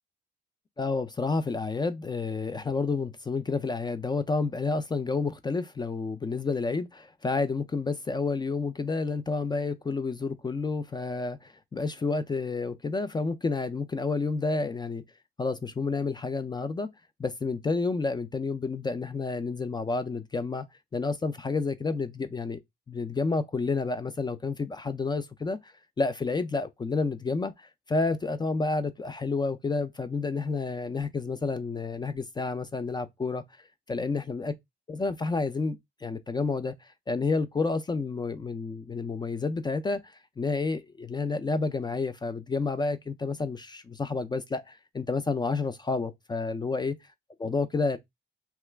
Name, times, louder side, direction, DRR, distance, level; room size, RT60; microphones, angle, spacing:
voice 1, 0.8-15.0 15.4-16.9 17.2-20.7 20.9-22.6 22.9-33.4 33.9-34.5 34.9-47.0 47.4-48.0, left 3 dB, 20° left, 0.4 m, -30 dB
2.9 x 2.3 x 3.2 m
cardioid pair, 90°, 20 cm